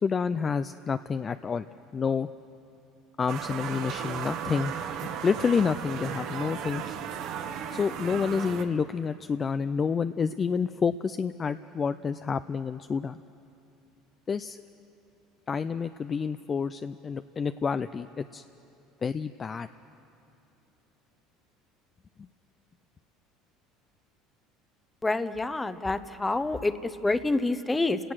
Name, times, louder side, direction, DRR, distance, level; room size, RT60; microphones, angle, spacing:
voice 1, 0.0-1.7 1.9-2.3 3.2-4.7 5.2-6.9 7.7-13.2 14.3-14.6 15.5-18.4 19.0-19.7 22.2-22.3, left 6 dB, 30° left, 11 dB, 0.4 m, -29 dB
sound 1, 3.3-8.6, right 8 dB, 60° right, 1.5 m, -35 dB
voice 2, 25.0-26.7 27.0-28.0, left 2 dB, 10° left, 12 dB, 0.9 m, -27 dB
29.5 x 18.0 x 6.3 m, 2.8 s
supercardioid pair, 110°, 0 cm